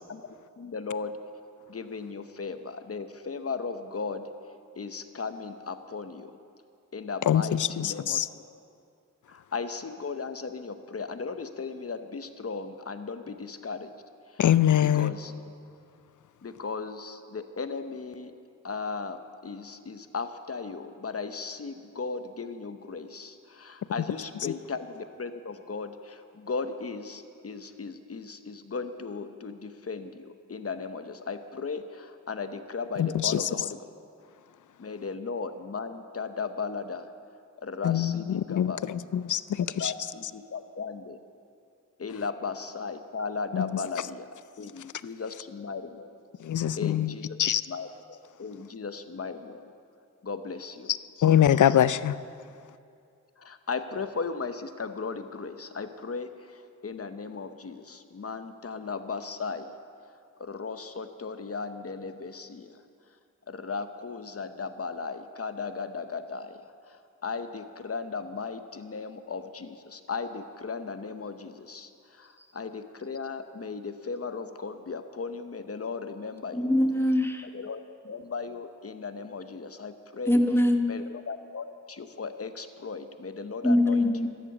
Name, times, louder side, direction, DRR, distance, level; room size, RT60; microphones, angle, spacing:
voice 1, 0.6-1.2 1.7-4.3 4.8-6.3 6.9-8.2 9.3-13.9 14.3-14.4 14.8-15.3 16.4-18.3 18.6-33.9 34.8-37.1 37.6-38.8 39.8-41.2 42.0-44.3 44.6-46.1 46.8-47.4 47.7-49.7 50.2-50.9 53.4-59.7 60.4-62.8 63.5-66.6 66.9-76.7 77.5-77.8 78.0-80.4 80.9-84.1, left 4 dB, 45° left, 9 dB, 0.9 m, -36 dB
voice 2, 7.3-8.3 14.4-15.1 24.4-24.5 33.0-33.5 37.8-39.9 43.5-43.7 46.4-47.6 51.2-52.2, left 10 dB, 65° left, 17 dB, 0.5 m, -24 dB
voice 3, 76.5-77.5 80.3-81.0 83.6-84.3, left 1 dB, 5° left, 5 dB, 1.2 m, -23 dB
13.0 x 10.0 x 7.2 m, 2.4 s
wide cardioid pair, 65°, 32 cm